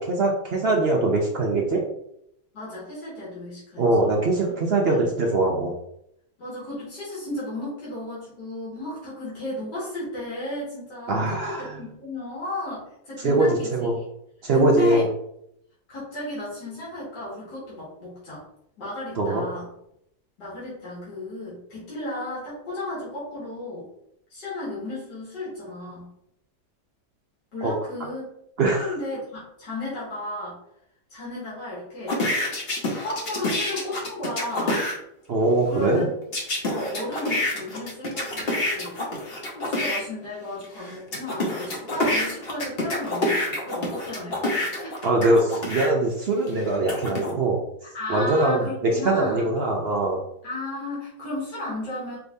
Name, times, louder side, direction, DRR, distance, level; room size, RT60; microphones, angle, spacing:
voice 1, 0.0-1.8 3.8-5.7 11.1-11.8 13.2-14.0 14.4-15.1 19.1-19.4 27.6-27.7 28.6-28.9 35.3-36.1 45.0-47.6 48.1-50.2, right 2 dB, 65° right, 0 dB, 0.6 m, -22 dB
voice 2, 2.5-3.8 4.8-5.1 6.4-14.0 14.5-15.1 15.9-18.4 18.8-19.7 20.4-23.9 24.3-26.1 27.5-28.3 28.7-30.6 31.1-32.6 32.8-34.8 35.7-36.0 36.7-39.0 39.5-45.0 47.9-49.5 50.4-52.2, left 1 dB, 80° left, -8 dB, 2.5 m, -34 dB
sound 1, 32.1-35.0 36.3-40.0 40.6-45.9 46.5-47.3, left 1 dB, 45° left, 0.9 m, -27 dB
5.0 x 3.4 x 2.6 m, 0.77 s
omnidirectional pair, 1.8 m